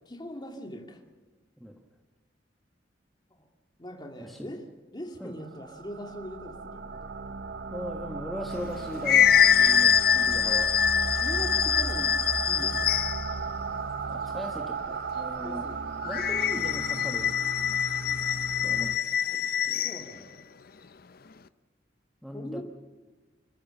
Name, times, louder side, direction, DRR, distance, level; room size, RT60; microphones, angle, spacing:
voice 1, 0.1-1.0 3.3-3.5 3.8-4.6 4.9-7.3 10.3-10.6 11.0-12.2 12.4-12.9 15.2-15.8 19.8-20.4 22.3-22.6, equal, 25° left, 4 dB, 2.2 m, -41 dB
voice 2, 4.2-4.5 5.2-5.3 7.7-10.7 14.1-15.6 16.0-17.3 18.6-18.9 19.3-19.9 22.2-22.6, equal, ahead, 2 dB, 1.2 m, -39 dB
sound 1, 5.4-19.0, right 4 dB, 65° right, 0.8 m, -35 dB
sound 2, 8.6-13.3 16.0-20.0, left 8 dB, 55° left, 0.6 m, -24 dB
27.0 x 14.5 x 7.0 m, 1.3 s
head